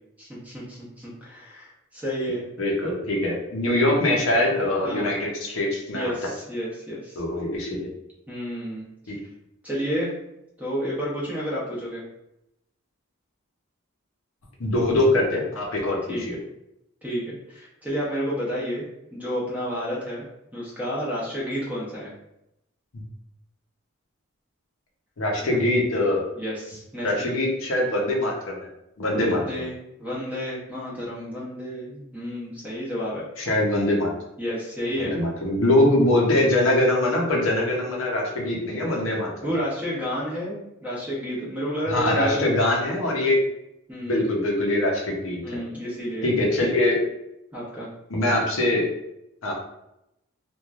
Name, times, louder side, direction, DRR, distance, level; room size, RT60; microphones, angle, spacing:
voice 1, 0.2-2.5 4.8-5.1 5.9-7.2 8.3-8.9 9.6-10.1 10.6-12.0 16.1-16.3 17.0-20.2 20.5-22.1 25.5-25.6 26.4-27.3 29.1-29.7 30.0-33.3 34.4-35.2 39.4-42.6 43.9-44.3 45.4-46.3 47.5-47.9, equal, 5° right, -6 dB, 0.7 m, -30 dB
voice 2, 2.6-6.1 7.2-7.9 9.1-9.2 14.6-16.0 16.3-16.4 25.2-26.2 27.0-28.6 29.0-29.4 33.4-34.1 35.0-39.5 41.9-43.4 44.1-45.4 46.2-47.0 48.1-48.8 49.4-49.5, left 1 dB, 70° left, -1 dB, 0.7 m, -23 dB
3.0 x 2.2 x 2.4 m, 0.84 s
head